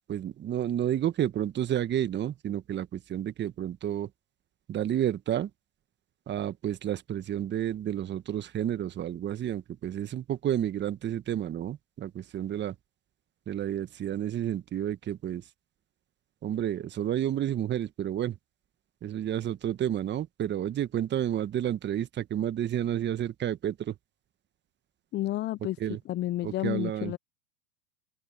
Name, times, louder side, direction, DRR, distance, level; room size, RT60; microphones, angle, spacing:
voice 1, 0.1-4.1 4.7-5.5 6.3-12.7 13.5-15.4 16.4-18.4 19.0-23.9 25.8-26.0 26.4-27.1, right 11 dB, 25° right, 1.5 m, -30 dB
voice 2, 25.1-25.8 26.1-27.2, left 15 dB, 25° left, 0.7 m, -30 dB
open air
hypercardioid pair, 105°, 43 cm